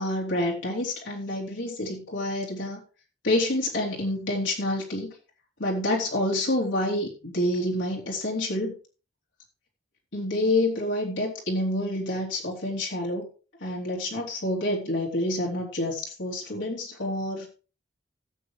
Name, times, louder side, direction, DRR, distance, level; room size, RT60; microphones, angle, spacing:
voice 1, 0.0-2.8 3.2-5.1 5.6-8.7 10.1-13.3 13.6-17.5, left 1 dB, 75° left, -3 dB, 3.2 m, -28 dB
16.5 x 8.1 x 3.3 m, 0.36 s
head